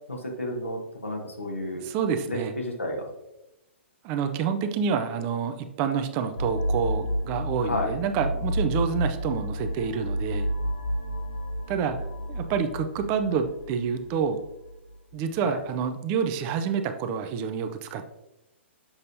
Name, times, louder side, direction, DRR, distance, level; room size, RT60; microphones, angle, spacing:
voice 1, 0.1-1.8 2.3-2.4 2.6-3.1 7.6-7.9 15.4-15.6, left 1 dB, 80° left, 1 dB, 1.4 m, -31 dB
voice 2, 1.7-2.5 4.0-10.5 11.7-12.0 12.3-14.4 15.1-18.0, right 6 dB, 30° right, 8 dB, 0.5 m, -28 dB
sound 1, 6.4-15.0, equal, 65° left, 1.6 m, -31 dB
7.1 x 5.3 x 2.6 m, 0.92 s
figure-of-eight pair, 115°, 7 cm